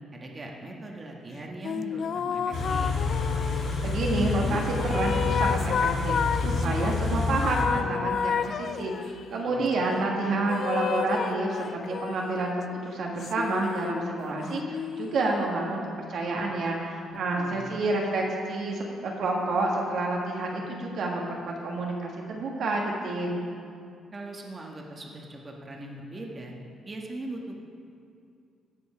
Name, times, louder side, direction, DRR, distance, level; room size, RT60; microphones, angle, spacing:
voice 1, 0.1-3.0 9.4-10.1 17.3-17.7 24.1-26.5 26.8-27.5, right 2 dB, 30° right, 0 dB, 1.3 m, -40 dB
sound 1, 1.6-3.9 4.5-7.0 7.4-9.3 10.5-12.4 13.2-15.5, left 7 dB, 55° left, 0.3 m, -31 dB
Car / Idling, 2.5-7.6, left 3 dB, 80° left, 2.8 m, -28 dB
voice 2, 3.8-12.6 12.8-15.8 16.1-21.2 21.6-23.4, right 2 dB, 65° right, -1 dB, 1.5 m, -29 dB
15.5 x 5.2 x 5.0 m, 2.4 s
cardioid pair, 90°, 0 cm